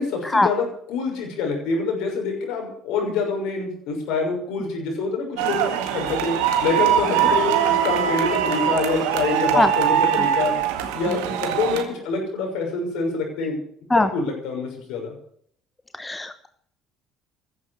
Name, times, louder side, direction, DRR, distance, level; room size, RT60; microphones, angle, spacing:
voice 1, 0.0-6.3 6.6-10.5 10.9-13.6 13.9-15.1, left 4 dB, 65° left, 2 dB, 6.2 m, -26 dB
sound 1, 5.4-11.8, right 10 dB, 70° right, 1.9 m, -22 dB
voice 2, 15.9-16.5, left 2 dB, 15° left, 11 dB, 1.1 m, -20 dB
15.0 x 12.0 x 6.6 m, 0.62 s
figure-of-eight pair, 60°, 0 cm